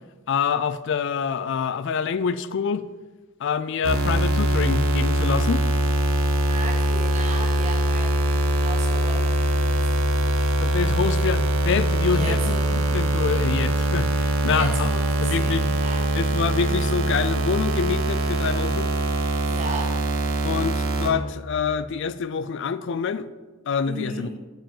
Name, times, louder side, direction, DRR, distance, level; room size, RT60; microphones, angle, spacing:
voice 1, 0.3-2.9 3.4-5.6 10.6-14.9 15.2-15.7 16.2-18.9 20.4-23.3 23.7-24.3, left 6 dB, 60° left, 14 dB, 0.4 m, -26 dB
sound 1, 3.8-21.1, right 1 dB, 85° right, 1.1 m, -22 dB
voice 2, 6.5-10.6 12.1-12.8 14.4-16.1 19.4-20.0 23.8-24.3, right 2 dB, 35° right, 1 dB, 1.5 m, -35 dB
7.4 x 5.1 x 7.1 m, 1.3 s
head